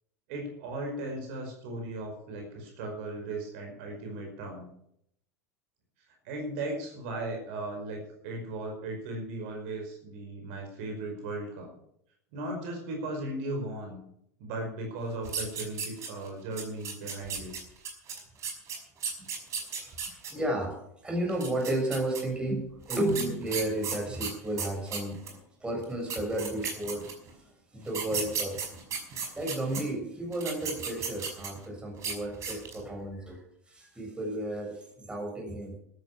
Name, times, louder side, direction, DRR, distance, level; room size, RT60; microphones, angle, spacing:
voice 1, 0.3-4.6 6.2-11.7 12.3-14.0 14.4-17.5, right 2 dB, 55° right, 2 dB, 5.2 m, -37 dB
sound 1, 15.2-16.3 16.6-20.3 21.3-22.2 22.9-25.4 25.8-25.9 26.1-27.3 27.9-29.8 30.3-31.7 32.0-32.1 32.4-32.8, right 6 dB, 35° right, 5.5 m, -35 dB
voice 2, 19.8-20.8 21.0-25.2 25.6-28.6 29.4-35.8, right 1 dB, 10° right, 1 dB, 6.9 m, -33 dB
14.0 x 12.5 x 6.4 m, 0.72 s
figure-of-eight pair, 80°, 9 cm